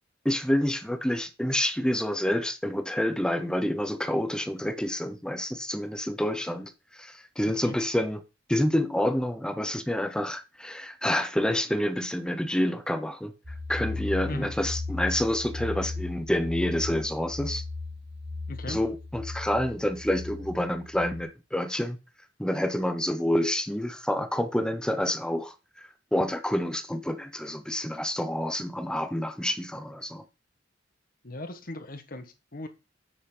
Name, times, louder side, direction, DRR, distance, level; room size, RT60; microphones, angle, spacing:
voice 1, 0.2-8.2 8.5-13.3 13.7-17.6 18.7-22.0 22.4-30.2, left 1 dB, 5° left, 0.7 m, -28 dB
sound 1, 13.4-21.2, left 3 dB, 35° right, 2.1 m, -36 dB
voice 2, 18.5-18.8 31.2-32.7, left 2 dB, 50° left, 1.3 m, -38 dB
8.3 x 6.7 x 3.8 m
head